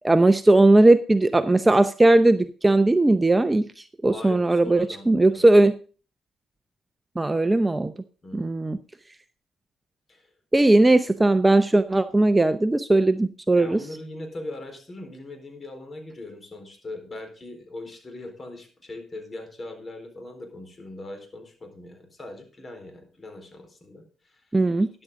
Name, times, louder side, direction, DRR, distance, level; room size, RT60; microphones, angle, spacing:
voice 1, 0.0-5.8 7.2-7.9 8.3-8.8 10.5-13.8 24.5-24.9, right 2 dB, 15° right, 11 dB, 0.7 m, -18 dB
voice 2, 4.0-5.5 8.2-8.6 10.1-10.3 13.6-24.5, left 2 dB, 30° left, 6 dB, 4.1 m, -40 dB
13.0 x 10.5 x 3.7 m, 0.37 s
cardioid pair, 90°, 0 cm